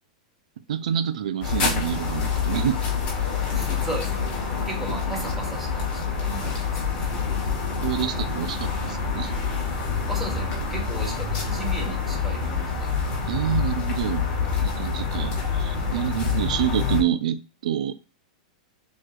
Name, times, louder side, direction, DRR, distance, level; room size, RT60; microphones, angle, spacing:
voice 1, 0.7-2.8 7.8-9.3 13.3-14.3 14.6-17.9, right 10 dB, 80° right, 0.6 m, -27 dB
sound 1, 1.4-17.0, left 5 dB, 35° left, 1.8 m, -27 dB
voice 2, 3.5-4.3 4.6-7.2 10.1-12.9, right 2 dB, 5° right, 1.6 m, -36 dB
6.3 x 3.2 x 2.5 m
supercardioid pair, 145°, 4 cm